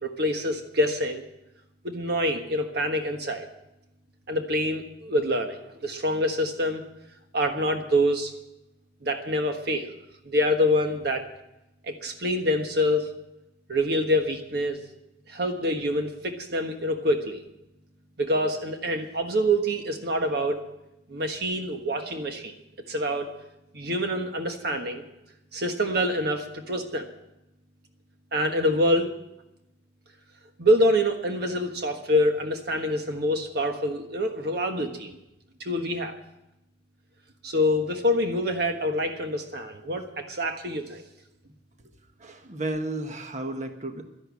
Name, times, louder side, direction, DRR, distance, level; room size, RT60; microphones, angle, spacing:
voice 1, 0.0-1.2 1.8-3.5 4.3-6.8 7.3-8.3 9.0-9.9 10.2-11.3 11.8-13.1 13.7-14.8 15.3-17.4 18.2-20.7 21.1-22.5 22.9-23.3 23.7-25.0 25.5-27.1 28.3-29.1 30.6-35.2 35.6-36.1 37.4-41.0, equal, 60° right, 5 dB, 1.4 m, -26 dB
voice 2, 42.2-44.0, right 2 dB, 40° right, 5 dB, 1.4 m, -33 dB
12.0 x 11.5 x 8.4 m, 0.90 s
head